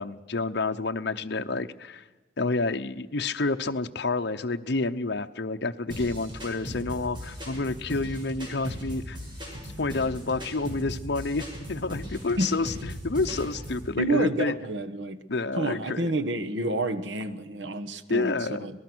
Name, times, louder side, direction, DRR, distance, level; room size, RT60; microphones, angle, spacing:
voice 1, 0.0-2.0 2.4-9.2 9.8-14.6 15.3-16.1 18.1-18.7, left 3 dB, 65° left, 6 dB, 0.8 m, -29 dB
sound 1, 5.9-13.9, equal, 25° right, 6.6 m, -38 dB
voice 2, 14.0-15.2 15.6-18.7, right 2 dB, 80° right, 9 dB, 1.3 m, -29 dB
25.5 x 19.0 x 6.2 m, 1.2 s
head